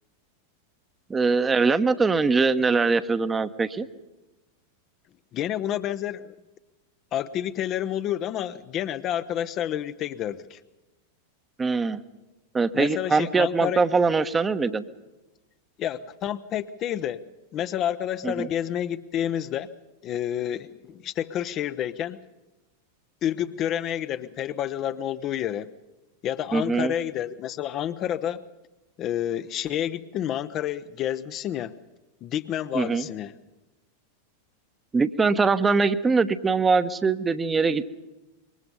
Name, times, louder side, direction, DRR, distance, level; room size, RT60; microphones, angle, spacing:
voice 1, 1.1-3.9 11.6-12.0 12.5-14.8 18.2-18.5 26.5-26.9 32.7-33.1 34.9-37.8, right 4 dB, 15° right, 11 dB, 1.1 m, -22 dB
voice 2, 5.3-6.4 7.1-10.6 12.7-13.8 15.8-17.3 17.5-19.7 20.0-22.2 23.2-25.7 26.2-28.4 29.0-31.8 32.2-33.3, left 11 dB, 35° left, 11 dB, 0.8 m, -29 dB
26.5 x 23.5 x 5.4 m, 1.0 s
figure-of-eight pair, 90°, 0 cm